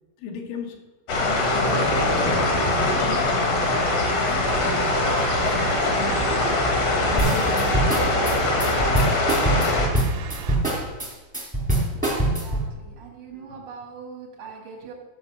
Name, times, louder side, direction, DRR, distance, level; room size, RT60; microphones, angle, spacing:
voice 1, 0.2-0.8 1.2-1.9 2.2-4.9 5.4-6.5 7.0-8.3, left 2 dB, 80° left, 2 dB, 4.0 m, -33 dB
sound 1, 1.1-9.9, left 2 dB, 60° left, 1.6 m, -22 dB
sound 2, 4.5-10.6, right 8 dB, 90° right, 3.7 m, -35 dB
sound 3, 7.2-12.7, right 1 dB, 5° right, 0.6 m, -23 dB
voice 2, 12.2-14.9, right 5 dB, 75° right, 0 dB, 1.0 m, -41 dB
14.0 x 5.5 x 6.8 m, 1.2 s
omnidirectional pair, 5.6 m